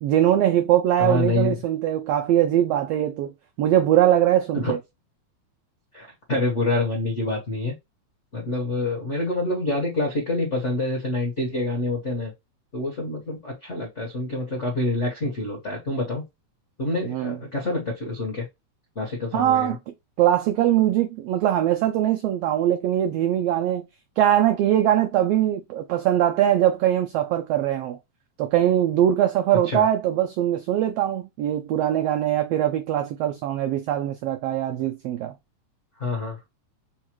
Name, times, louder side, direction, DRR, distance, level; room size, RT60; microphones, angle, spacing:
voice 1, 0.0-3.3 3.6-4.8 17.1-17.4 19.3-19.8 20.2-23.9 24.2-28.0 28.4-35.3, right 11 dB, 90° right, 1.4 m, -21 dB
voice 2, 1.0-1.6 4.5-4.7 5.9-7.7 8.3-12.3 12.7-16.2 16.8-18.5 18.9-19.7 29.7-29.8 36.0-36.5, left 2 dB, 70° left, 0.6 m, -27 dB
4.7 x 2.2 x 3.0 m
omnidirectional pair, 3.3 m